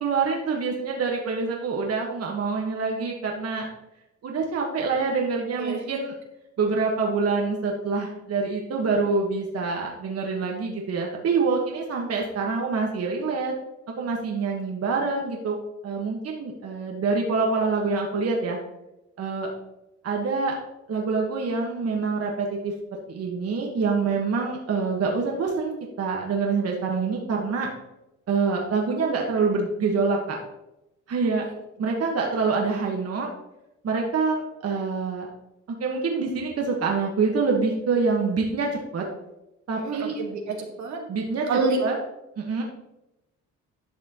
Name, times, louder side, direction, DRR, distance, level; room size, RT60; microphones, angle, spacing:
voice 1, 0.0-3.7 4.2-6.1 6.6-13.5 14.0-15.6 15.8-18.6 19.2-19.5 20.0-20.5 20.9-22.7 23.1-27.7 28.3-30.4 31.1-31.4 31.8-33.3 33.8-35.3 35.8-39.0 39.7-40.1 41.1-42.0 42.4-42.6, right 4 dB, 55° right, 0 dB, 1.4 m, -26 dB
voice 2, 5.6-6.0 39.8-41.0 41.5-41.8, right 3 dB, 70° right, 2 dB, 1.7 m, -28 dB
11.5 x 6.0 x 3.0 m, 0.91 s
cardioid pair, 90°, 30 cm